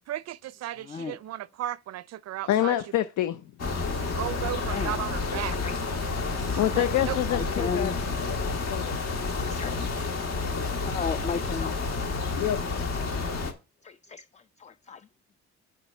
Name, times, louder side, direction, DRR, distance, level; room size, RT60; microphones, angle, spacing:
voice 1, 0.1-2.8 4.0-5.6 6.3-7.2, right 13 dB, 60° right, 0.4 m, -35 dB
voice 2, 0.8-1.2 4.6-5.0 5.4-5.8 7.3-8.0 8.5-8.7 9.2-9.8 10.9-12.0 12.7-13.1 13.8-15.1, left 5 dB, 25° left, 0.4 m, -36 dB
voice 3, 2.5-3.4 6.6-7.9 8.3-9.2 9.7-9.8 12.3-12.6, left 12 dB, 75° left, 0.6 m, -27 dB
sound 1, 3.6-13.5, left 3 dB, 60° left, 1.7 m, -30 dB
6.1 x 4.7 x 5.4 m
cardioid pair, 90°, 30 cm